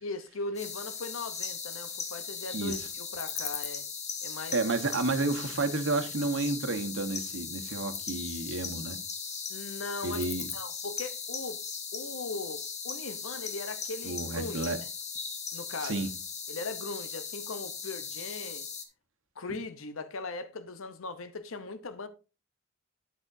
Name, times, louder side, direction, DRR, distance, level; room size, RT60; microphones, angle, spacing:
voice 1, 0.0-3.9 4.2-4.5 9.5-10.2 10.5-11.6 11.9-14.9 15.5-16.0 16.5-18.7 19.4-22.1, left 3 dB, 70° left, 0.8 m, -39 dB
sound 1, 0.6-18.9, left 6 dB, 35° left, 1.4 m, -38 dB
voice 2, 2.5-2.9 4.5-9.0 10.0-10.5 14.0-14.8 15.8-16.1, right 3 dB, 65° right, 1.2 m, -31 dB
9.5 x 8.5 x 2.7 m
head